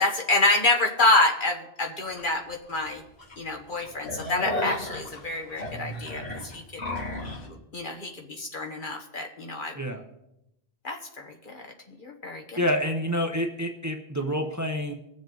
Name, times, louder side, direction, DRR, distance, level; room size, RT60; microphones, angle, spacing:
voice 1, 0.0-3.0 3.4-6.6 7.5-9.8 10.8-11.6 12.0-12.6, left 2 dB, 55° left, 3 dB, 1.5 m, -27 dB
sound 1, 2.2-2.3 2.8-2.9 3.2-3.3 3.7-7.5, left 1 dB, 85° left, 2.7 m, -33 dB
voice 2, 12.6-14.9, equal, 20° right, 3 dB, 0.8 m, -28 dB
20.5 x 7.1 x 3.9 m, 0.87 s
omnidirectional pair, 1.1 m